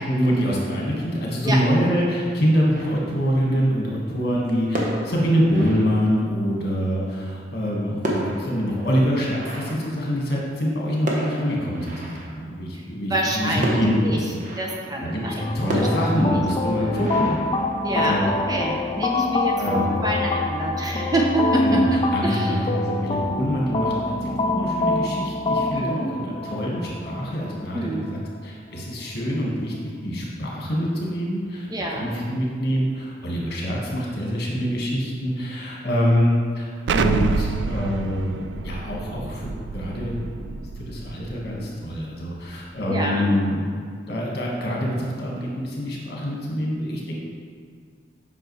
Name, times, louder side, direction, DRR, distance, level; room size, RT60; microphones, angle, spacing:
voice 1, 0.0-14.4 15.0-15.2 15.5-17.4 17.9-18.3 19.6-19.9 21.6-29.7 30.0-40.5 40.8-43.6 44.1-47.2, equal, 60° left, -3 dB, 1.5 m, -25 dB
sound 1, 2.7-3.4 4.6-6.5 7.5-10.6 11.0-12.6 13.6-15.0 15.7-18.2, right 1 dB, 45° right, 1.1 m, -33 dB
voice 2, 13.1-14.2 14.6-15.5 15.8-15.9 16.3-16.4 16.7-17.1 17.8-22.6 25.7-26.1 27.7-28.1 31.7-32.1 42.9-43.3, right 1 dB, 20° right, -1 dB, 0.7 m, -26 dB
sound 2, 15.4-28.4, left 2 dB, 30° left, 0.4 m, -26 dB
Explosion, 36.9-41.6, right 4 dB, 70° right, 0.3 m, -27 dB
7.9 x 5.7 x 3.2 m, 2.1 s
head